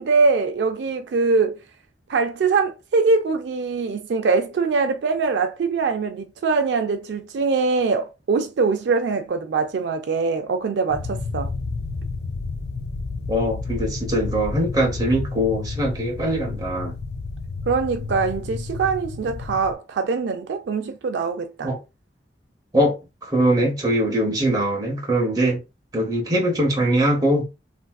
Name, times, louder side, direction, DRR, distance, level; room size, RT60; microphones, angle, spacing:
voice 1, 0.0-1.5 2.1-11.5 17.7-21.7, right 4 dB, 65° right, 0.3 m, -23 dB
sound 1, 10.9-19.7, left 3 dB, 65° left, 0.4 m, -31 dB
voice 2, 13.3-16.9 21.6-21.8 22.7-22.9 23.2-25.6 25.9-27.5, right 1 dB, 20° right, 0.8 m, -22 dB
3.3 x 2.6 x 2.2 m
head